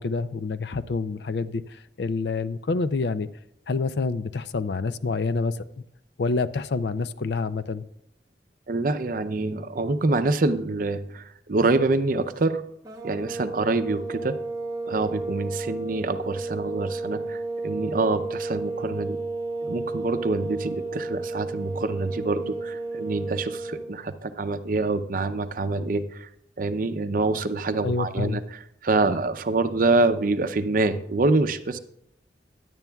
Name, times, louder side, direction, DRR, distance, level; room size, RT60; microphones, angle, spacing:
voice 1, 0.0-3.3 3.7-5.6 6.2-7.8 27.8-28.4, left 4 dB, 70° left, 14 dB, 0.5 m, -27 dB
voice 2, 8.7-12.6 13.0-14.4 14.9-19.2 19.6-26.3 26.6-31.8, right 3 dB, 50° right, 11 dB, 0.6 m, -26 dB
sound 1, 12.8-23.9, right 3 dB, 20° right, 1.0 m, -32 dB
16.0 x 10.5 x 2.3 m, 0.75 s
head